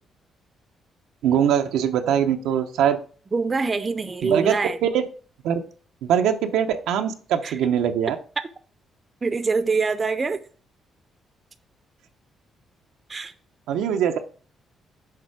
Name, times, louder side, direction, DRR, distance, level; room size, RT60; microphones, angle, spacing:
voice 1, 1.2-3.0 4.2-4.5 4.8-5.0 5.4-5.6 6.0-8.2 13.7-14.2, right 9 dB, 90° right, 0.7 m, -22 dB
voice 2, 3.3-4.8 7.4-7.6 8.4-8.5 9.2-10.4 13.1-13.3, right 4 dB, 30° right, 0.6 m, -24 dB
6.7 x 4.2 x 4.7 m
cardioid pair, 90°, 0 cm